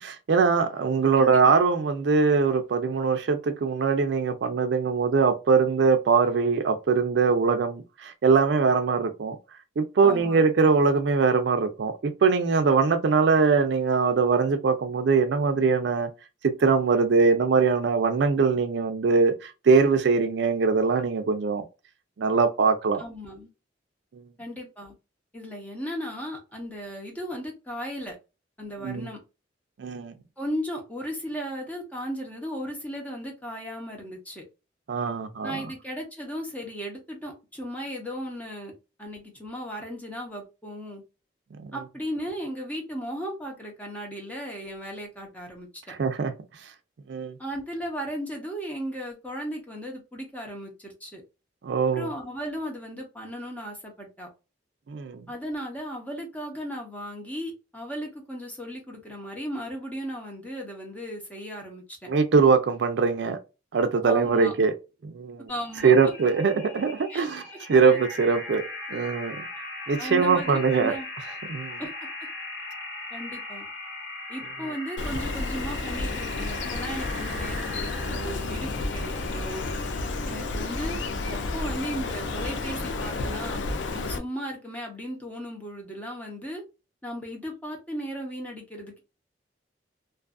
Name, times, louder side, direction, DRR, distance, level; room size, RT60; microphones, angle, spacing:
voice 1, 0.0-9.4 9.8-16.1 16.6-21.6 22.2-23.0 24.1-24.3 28.8-29.1 29.8-30.1 34.9-35.6 41.6-41.8 45.9-46.3 47.1-47.3 51.6-52.1 54.9-55.3 62.1-63.4 63.7-64.7 65.0-65.5 65.8-67.4 67.7-68.6 68.9-69.4 69.9-70.9 71.5-71.8 80.2-80.4, right 5 dB, 65° right, 0.4 m, -22 dB
voice 2, 1.2-1.6 10.0-10.4 23.0-23.5 24.4-24.9 25.3-28.2 28.6-29.2 30.4-34.4 35.4-38.7 39.0-41.0 41.7-45.9 47.4-51.2 51.9-54.3 55.3-62.1 64.0-64.6 65.5-65.9 67.1-67.8 70.0-71.1 71.8-72.1 73.1-73.7 74.3-79.6 80.3-81.0 81.3-83.6 83.9-86.6 87.0-89.0, equal, 10° left, 0.8 m, -36 dB
sound 1, 65.5-80.1, left 2 dB, 65° left, 1.1 m, -39 dB
Bird, 75.0-84.2, left 3 dB, 85° left, 0.4 m, -31 dB
2.6 x 2.4 x 2.3 m
head